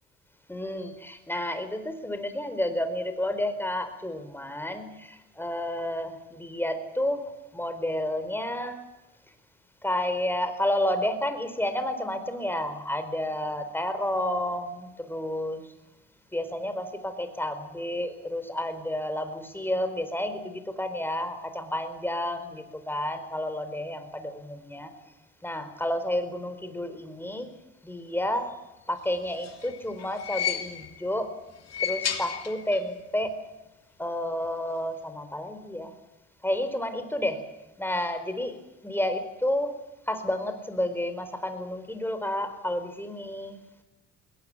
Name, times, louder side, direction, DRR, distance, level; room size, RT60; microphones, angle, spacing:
voice 1, 0.5-8.8 9.8-15.7 16.3-24.9 25.4-27.5 27.8-28.5 28.9-31.3 31.8-33.4 34.0-35.9 36.4-37.4 37.8-39.7 40.1-43.6, left 1 dB, 5° left, 9 dB, 4.4 m, -30 dB
sound 1, 29.2-31.1 31.6-33.0 33.2-33.3 34.4-34.5, left 9 dB, 60° left, 2.8 m, -33 dB
21.0 x 18.5 x 8.6 m, 0.99 s
cardioid pair, 90°, 30 cm